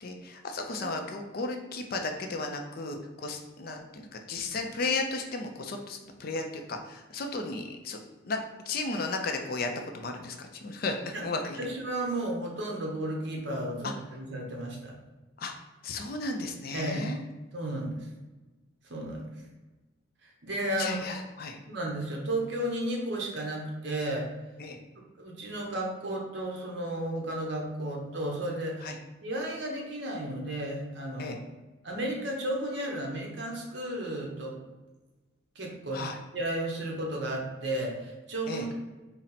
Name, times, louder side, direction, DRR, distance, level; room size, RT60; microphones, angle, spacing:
voice 1, 0.0-8.0 8.3-8.4 8.7-11.6 15.4-15.5 15.8-17.2 20.8-21.6 24.6-24.8 28.8-28.9 31.2-31.4 35.9-36.2 38.5-38.7, left 3 dB, 45° left, 4 dB, 0.4 m, -34 dB
voice 2, 11.6-14.9 16.7-17.1 17.5-18.1 18.9-19.3 20.2-21.0 21.7-24.3 25.2-28.9 29.2-31.4 31.8-34.5 35.6-36.0 36.3-38.7, right 1 dB, 55° right, 0 dB, 0.8 m, -33 dB
4.1 x 2.0 x 4.1 m, 1.2 s
head